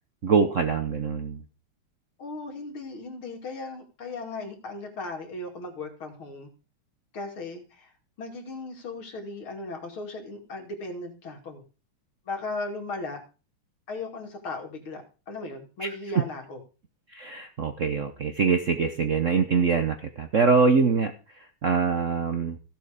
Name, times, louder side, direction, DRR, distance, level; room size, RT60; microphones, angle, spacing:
voice 1, 0.2-1.4 15.8-15.9 17.1-22.6, right 5 dB, 55° right, 7 dB, 0.9 m, -24 dB
voice 2, 2.2-6.5 7.1-7.9 8.2-11.6 12.3-13.2 13.9-16.6, left 2 dB, 70° left, 2 dB, 3.3 m, -37 dB
15.0 x 7.7 x 5.1 m, 0.35 s
omnidirectional pair, 2.4 m